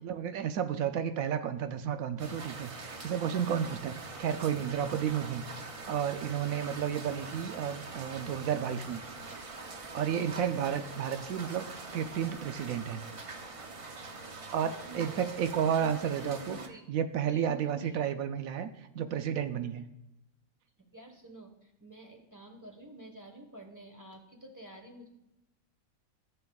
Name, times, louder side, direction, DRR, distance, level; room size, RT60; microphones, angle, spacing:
voice 1, 0.0-5.4 5.9-9.0 9.9-13.0 14.5-16.6 16.9-18.7 18.9-19.8, right 8 dB, 80° right, 9 dB, 1.0 m, -32 dB
sound 1, 2.2-16.7, right 3 dB, 40° right, 0.5 m, -44 dB
voice 2, 14.6-16.8 17.2-18.0 20.8-25.1, right 1 dB, 15° right, 2 dB, 1.2 m, -49 dB
14.0 x 6.8 x 2.3 m, 0.90 s
omnidirectional pair, 1.4 m